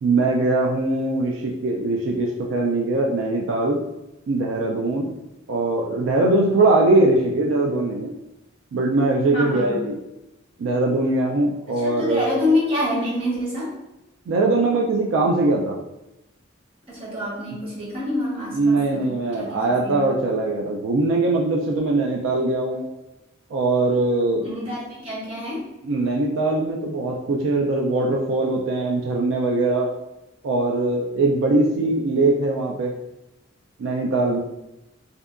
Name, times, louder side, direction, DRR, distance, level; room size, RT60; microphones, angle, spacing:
voice 1, 0.0-3.8 4.3-5.1 5.5-8.1 8.7-9.9 10.6-12.3 14.3-15.8 18.5-22.9 23.5-24.4 25.8-29.9 30.4-32.9 33.8-34.4, right 2 dB, 75° right, -1 dB, 0.3 m, -21 dB
voice 2, 9.3-9.8 11.7-13.8 16.9-20.1 24.3-25.7, left 1 dB, 30° right, -6 dB, 0.9 m, -27 dB
2.6 x 2.2 x 2.4 m, 0.93 s
head